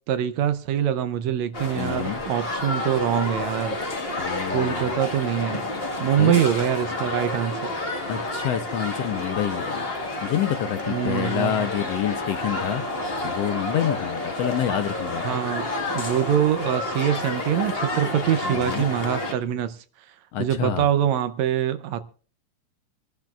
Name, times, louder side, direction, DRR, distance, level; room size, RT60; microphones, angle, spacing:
voice 1, 0.1-3.8 4.1-4.2 4.5-5.6 6.0-7.7 10.9-11.7 15.2-15.7 15.9-19.8 20.4-22.0, right 10 dB, 75° right, 1.8 m, -24 dB
sound 1, 1.5-19.3, left 2 dB, 35° left, 1.0 m, -29 dB
voice 2, 1.8-2.2 4.2-4.9 6.2-6.4 8.1-9.8 10.2-12.8 13.2-15.4 18.4-18.8 20.3-20.9, left 10 dB, 75° left, 1.6 m, -27 dB
26.5 x 12.0 x 2.4 m
omnidirectional pair, 3.4 m